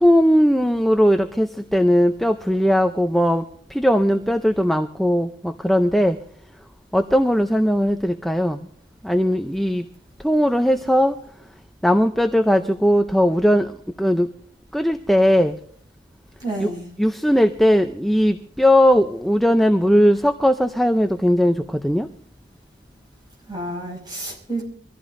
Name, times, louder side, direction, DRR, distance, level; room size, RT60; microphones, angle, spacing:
voice 1, 0.0-3.4 3.7-6.2 6.9-8.6 9.0-9.8 10.2-11.1 11.8-13.7 14.0-14.3 14.7-15.6 16.6-16.7 17.0-21.6 21.8-22.1, equal, ahead, 6 dB, 0.5 m, -18 dB
voice 2, 16.4-16.9 23.5-24.7, right 2 dB, 20° right, -1 dB, 5.5 m, -30 dB
24.0 x 14.5 x 2.6 m, 0.63 s
head